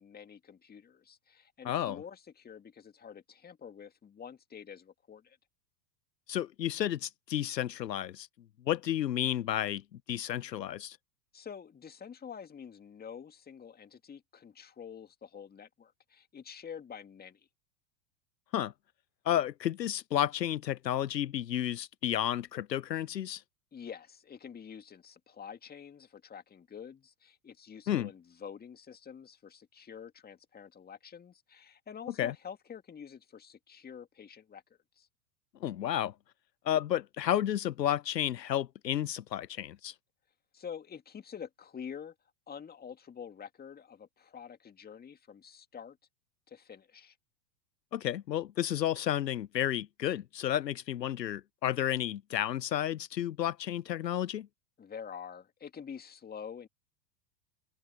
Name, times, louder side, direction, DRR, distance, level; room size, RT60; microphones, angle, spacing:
voice 1, 0.0-5.4 11.3-17.5 23.7-35.1 40.5-42.1 42.5-46.0 46.5-47.2 54.8-56.7, left 7 dB, 20° left, 2.3 m, -47 dB
voice 2, 1.6-2.0 6.3-8.3 8.7-9.8 10.1-11.0 18.5-18.7 19.3-23.4 27.9-28.1 32.2-32.3 35.6-36.1 36.6-39.9 47.9-54.5, left 11 dB, 80° left, 0.7 m, -31 dB
figure-of-eight pair, 90°, 49 cm